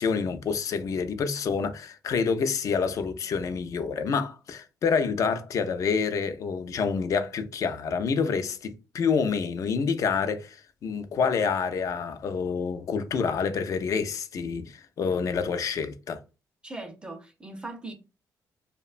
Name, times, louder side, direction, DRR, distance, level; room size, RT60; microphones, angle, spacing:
voice 1, 0.0-16.2, left 5 dB, 55° left, 0.4 m, -28 dB
voice 2, 16.6-17.9, right 2 dB, 15° right, 0.6 m, -39 dB
2.8 x 2.1 x 2.4 m
cardioid pair, 110°, 7 cm